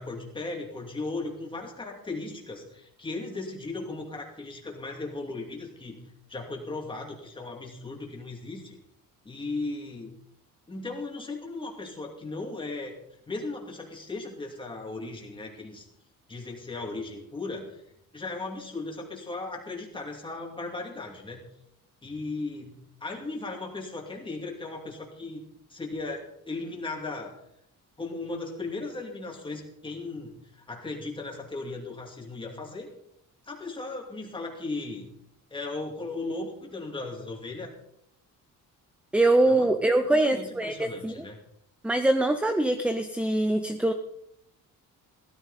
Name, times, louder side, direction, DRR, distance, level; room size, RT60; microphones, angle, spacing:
voice 1, 0.0-6.0 6.3-8.8 9.2-10.1 10.7-13.0 13.3-15.9 16.3-17.8 18.1-21.4 22.0-25.4 25.7-27.4 28.0-32.9 33.4-35.1 35.5-37.7 39.4-39.7 40.1-41.4, left 3 dB, 15° left, 0 dB, 2.6 m, -37 dB
voice 2, 39.1-41.2 41.8-43.9, right 2 dB, 5° right, 8 dB, 0.5 m, -23 dB
16.0 x 13.5 x 4.1 m, 0.76 s
cardioid pair, 180°, 34 cm